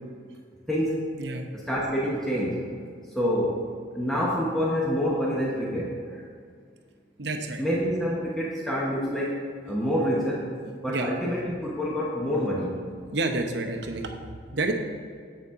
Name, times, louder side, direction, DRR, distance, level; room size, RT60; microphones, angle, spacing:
voice 1, 0.7-1.0 1.5-2.6 3.1-3.6 3.9-6.2 7.6-9.4 9.6-12.7, equal, ahead, -5 dB, 0.9 m, -27 dB
voice 2, 7.2-7.6 10.9-11.1 13.1-14.7, right 2 dB, 65° right, 3 dB, 0.8 m, -29 dB
7.8 x 6.8 x 3.6 m, 2.2 s
head